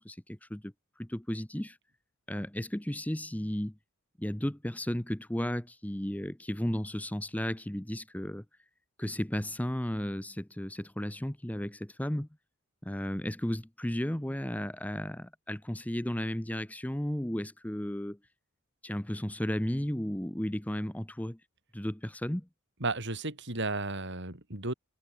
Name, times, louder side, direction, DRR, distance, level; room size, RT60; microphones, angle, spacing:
voice 1, 0.0-1.8 2.3-3.7 4.2-8.4 9.0-12.3 12.8-18.2 18.8-21.4 21.7-22.5, equal, 5° left, 0.9 m, -34 dB
voice 2, 22.8-24.7, right 2 dB, 55° right, 5.5 m, -33 dB
head